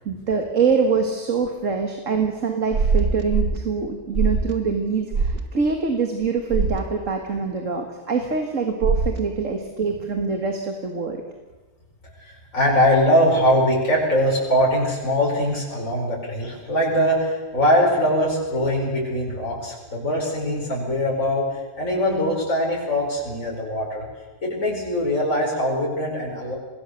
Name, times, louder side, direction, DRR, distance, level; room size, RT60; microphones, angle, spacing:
voice 1, 0.1-11.2, right 5 dB, 55° right, 4 dB, 2.2 m, -24 dB
sound 1, 2.7-3.6 4.1-4.5 5.1-5.4 6.5-6.8 8.8-9.2, right 4 dB, 85° right, 2.1 m, -21 dB
voice 2, 12.2-24.1 24.4-26.6, equal, 60° left, -3 dB, 5.5 m, -22 dB
26.0 x 20.0 x 6.6 m, 1.2 s
omnidirectional pair, 1.6 m